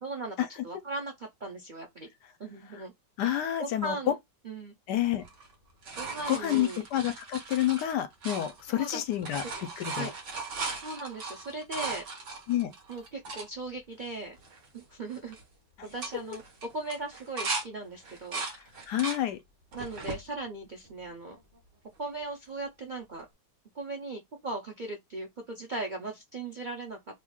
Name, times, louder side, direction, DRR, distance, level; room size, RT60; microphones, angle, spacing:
voice 1, 0.0-2.1 2.4-2.9 3.6-4.2 4.4-4.7 6.0-6.8 8.8-9.0 9.5-9.6 9.9-10.1 10.8-12.0 12.9-14.4 14.7-15.4 15.8-16.4 16.7-18.4 19.7-21.4 22.0-23.2 23.7-27.0, right 2 dB, 80° right, 0.4 m, -38 dB
voice 2, 3.2-3.9 4.9-5.2 6.3-9.4 9.8-10.1 12.5-12.7 18.9-19.4, left 12 dB, 75° left, 1.2 m, -29 dB
sound 1, 5.2-8.9 9.1-13.5 14.1-14.2 14.4-14.8 15.1-15.4 15.8-17.7 18.0-19.2 19.7-20.2 20.8-21.6 23.2-23.3, right 3 dB, 50° right, 1.1 m, -38 dB
3.0 x 2.4 x 3.5 m
omnidirectional pair, 1.9 m